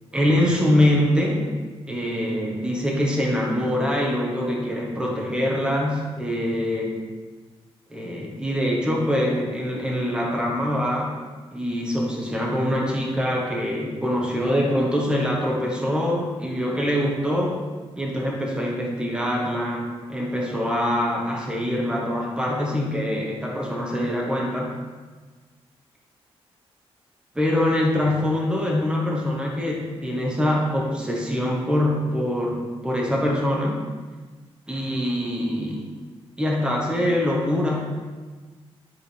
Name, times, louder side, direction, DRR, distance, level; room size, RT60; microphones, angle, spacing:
voice 1, 0.1-1.5 1.9-7.0 7.9-11.1 11.5-17.6 18.0-24.7 27.3-33.8 34.7-35.9 36.4-37.8, left 1 dB, 10° right, -2 dB, 1.3 m, -24 dB
11.0 x 4.9 x 3.4 m, 1.4 s
wide cardioid pair, 140°, 10 cm